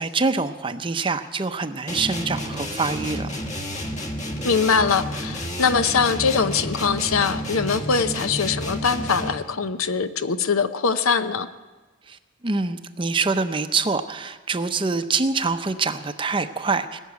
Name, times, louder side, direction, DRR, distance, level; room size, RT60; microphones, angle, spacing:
voice 1, 0.0-3.3 12.1-12.2 12.4-17.0, right 4 dB, 25° right, 9 dB, 0.6 m, -25 dB
sound 1, 1.9-9.5, equal, 35° left, 1.3 m, -30 dB
voice 2, 4.4-11.5, left 5 dB, 80° left, 11 dB, 0.7 m, -22 dB
20.0 x 7.3 x 9.3 m, 1.3 s
head